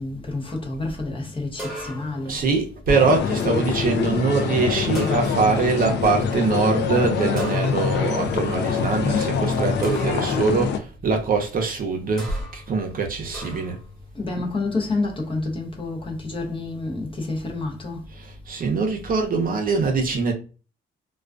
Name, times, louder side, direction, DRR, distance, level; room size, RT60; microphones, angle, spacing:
voice 1, 0.0-2.4 14.1-18.1, left 2 dB, 25° left, 0.7 m, -29 dB
sound 1, 1.6-2.3 4.9-5.7 7.4-8.1 9.8-10.4 12.2-12.7 13.3-13.9, right 1 dB, ahead, 1.0 m, -36 dB
voice 2, 2.2-13.8 18.1-20.3, right 4 dB, 45° right, 0.6 m, -23 dB
sound 2, 2.9-10.8, left 6 dB, 60° left, 0.4 m, -24 dB
2.3 x 2.3 x 2.4 m
cardioid pair, 90°, 20 cm